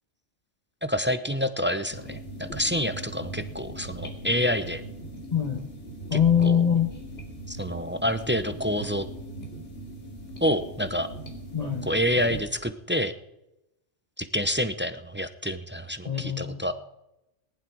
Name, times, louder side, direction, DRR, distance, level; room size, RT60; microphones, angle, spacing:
voice 1, 0.8-4.8 6.4-6.6 7.5-9.1 10.4-11.1 11.9-13.1 14.2-16.7, equal, 15° right, 11 dB, 0.5 m, -27 dB
sound 1, 1.9-12.4, right 1 dB, 70° left, 2.7 m, -40 dB
voice 2, 5.3-5.6 6.1-6.9 11.5-11.9 16.1-16.6, left 8 dB, 35° left, 2 dB, 1.2 m, -23 dB
19.0 x 10.5 x 4.6 m, 0.88 s
omnidirectional pair, 1.3 m